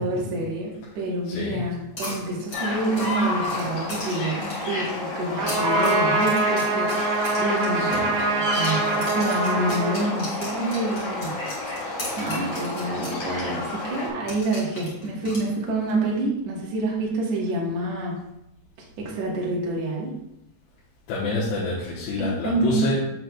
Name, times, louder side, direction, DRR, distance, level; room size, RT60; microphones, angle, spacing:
voice 1, 0.0-11.4 12.2-18.2 19.0-20.2 22.2-23.0, right 2 dB, 70° right, -3 dB, 1.6 m, -27 dB
voice 2, 1.3-1.6 7.7-8.0 21.1-23.0, left 3 dB, 75° left, -6 dB, 3.1 m, -27 dB
sound 1, 2.0-4.8 5.3-8.3 8.5-13.2 13.5-13.6 14.3-15.9, left 1 dB, 40° left, 1.6 m, -37 dB
sound 2, 2.5-14.1, left 2 dB, 55° left, 2.2 m, -30 dB
Trumpet, 5.4-10.6, right 2 dB, 85° right, 3.4 m, -25 dB
7.7 x 7.7 x 2.3 m, 0.84 s
omnidirectional pair, 5.2 m